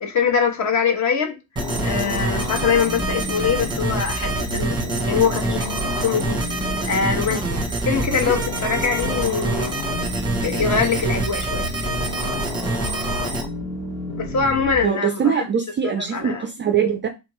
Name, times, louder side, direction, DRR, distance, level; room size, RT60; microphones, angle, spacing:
voice 1, 0.0-1.4 1.8-4.8 5.1-5.7 6.0-6.4 6.8-9.7 10.4-11.7 14.2-15.5 15.8-16.4, left 6 dB, 40° left, 1.2 m, -23 dB
sound 1, 1.6-14.8, left 2 dB, 80° left, 1.6 m, -31 dB
sound 2, 1.6-13.4, right 2 dB, 10° right, 1.0 m, -26 dB
voice 2, 14.8-17.1, right 7 dB, 25° right, 0.4 m, -22 dB
3.8 x 3.4 x 3.1 m
cardioid pair, 105°, 45 cm